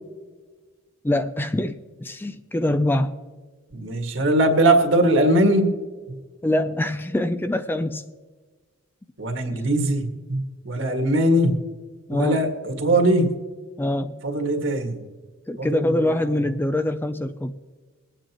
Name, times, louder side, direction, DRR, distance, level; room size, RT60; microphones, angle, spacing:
voice 1, 1.0-3.1 6.4-8.1 12.1-12.5 13.8-14.2 15.5-17.6, left 1 dB, 10° left, 10 dB, 0.4 m, -24 dB
voice 2, 3.7-5.7 6.1-6.2 9.2-11.6 12.1-13.3 14.2-15.0 15.6-16.4, right 1 dB, 65° right, 3 dB, 1.9 m, -21 dB
23.0 x 9.0 x 3.0 m, 1.4 s
head